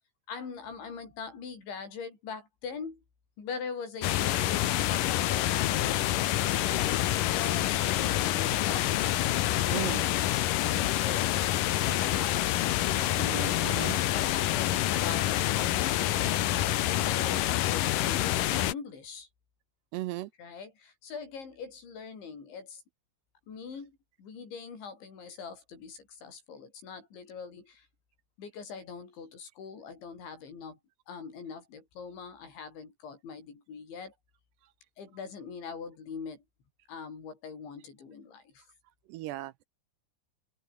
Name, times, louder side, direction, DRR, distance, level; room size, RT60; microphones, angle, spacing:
voice 1, 0.3-3.0 3.4-10.3 10.6-12.5 12.8-13.2 13.6-15.3 15.6-19.3 20.4-22.8 23.5-27.9 28.4-30.8 31.1-34.1 35.0-36.4 36.9-38.7, left 5 dB, 85° left, 8.6 m, -43 dB
sound 1, 4.0-18.7, left 14 dB, 70° left, 2.1 m, -27 dB
voice 2, 9.7-10.1 13.2-14.0 19.9-20.3 39.1-39.6, right 17 dB, 80° right, 2.8 m, -36 dB
open air
omnidirectional pair, 5.1 m